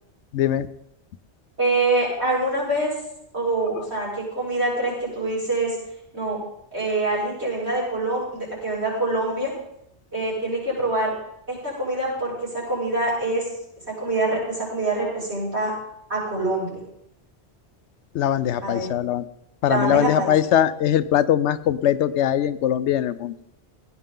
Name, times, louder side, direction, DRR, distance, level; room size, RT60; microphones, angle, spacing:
voice 1, 0.3-0.7 18.1-19.2 19.6-23.3, left 11 dB, 80° left, 15 dB, 0.9 m, -21 dB
voice 2, 1.6-2.9 3.3-5.8 6.1-6.4 6.7-9.5 10.1-11.1 11.5-13.4 13.9-15.7 16.1-16.8 18.6-18.9 19.6-20.3, right 2 dB, 70° right, -7 dB, 6.6 m, -25 dB
16.5 x 9.9 x 3.8 m, 0.78 s
omnidirectional pair, 1.2 m